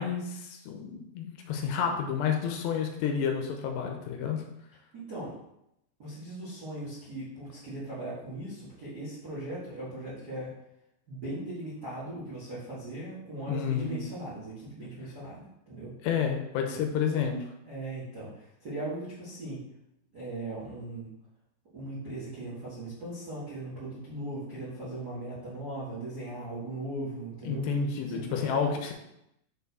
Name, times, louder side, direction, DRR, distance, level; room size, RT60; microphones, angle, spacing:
voice 1, 0.0-4.4 13.5-14.0 16.0-17.4 27.5-28.9, left 7 dB, 80° left, 3 dB, 2.8 m, -30 dB
voice 2, 4.9-5.4 6.0-10.5 11.1-15.9 16.7-16.8 17.6-19.6 20.1-21.1 21.7-27.7 28.0-28.7, right 1 dB, 80° right, -9 dB, 0.8 m, -39 dB
6.9 x 4.5 x 4.1 m, 0.82 s
omnidirectional pair, 5.2 m